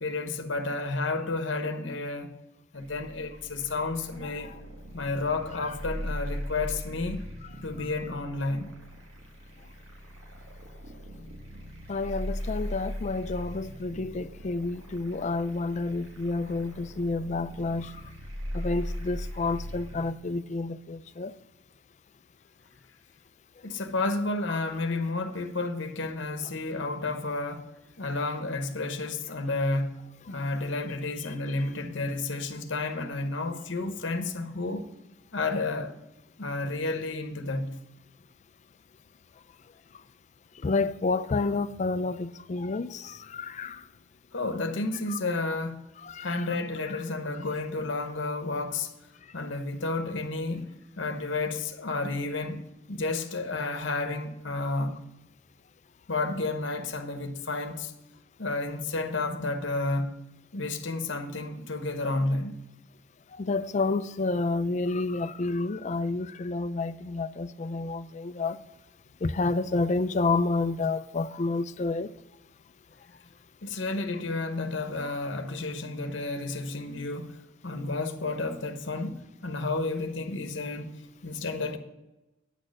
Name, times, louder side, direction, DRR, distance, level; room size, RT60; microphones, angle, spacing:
voice 1, 0.0-2.3 2.7-4.5 4.9-7.3 7.6-8.7 23.6-27.7 28.0-34.9 35.3-35.9 36.4-37.8 44.3-45.9 46.2-48.9 49.3-55.0 56.1-57.9 58.4-60.1 60.5-62.6 73.6-81.0 81.2-81.8, left 3 dB, 60° left, 0.9 m, -31 dB
sound 1, 2.8-20.1, equal, 85° right, 1.5 m, -39 dB
voice 2, 11.9-18.0 18.5-21.3 40.6-43.8 46.0-46.5 63.4-68.6 69.2-72.1, left 3 dB, 35° left, 0.4 m, -29 dB
9.0 x 6.4 x 6.4 m
head